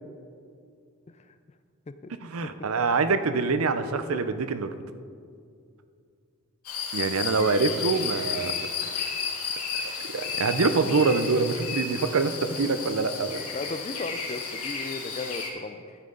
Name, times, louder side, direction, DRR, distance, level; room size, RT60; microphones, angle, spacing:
voice 1, 2.2-4.7 6.9-8.5 9.8-13.4, right 4 dB, 70° right, 11 dB, 0.6 m, -25 dB
voice 2, 3.9-4.2 13.5-16.0, left 3 dB, 30° left, 10 dB, 0.4 m, -36 dB
sound 1, 6.6-15.5, left 6 dB, 85° left, 1.7 m, -33 dB
13.0 x 9.0 x 3.8 m, 2.3 s
head